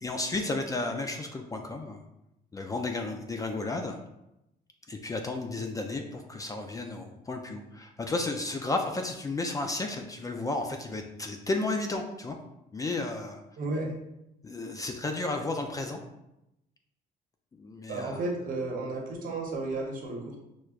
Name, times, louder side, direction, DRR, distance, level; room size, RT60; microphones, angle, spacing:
voice 1, 0.0-2.0 2.5-4.0 4.9-12.4 12.7-13.4 14.4-16.0 17.5-18.2, left 2 dB, 20° left, 4 dB, 0.4 m, -33 dB
voice 2, 13.6-13.9 17.9-20.4, right 2 dB, 55° right, 0 dB, 1.0 m, -33 dB
6.1 x 2.2 x 2.4 m, 0.87 s
cardioid pair, 110°, 17 cm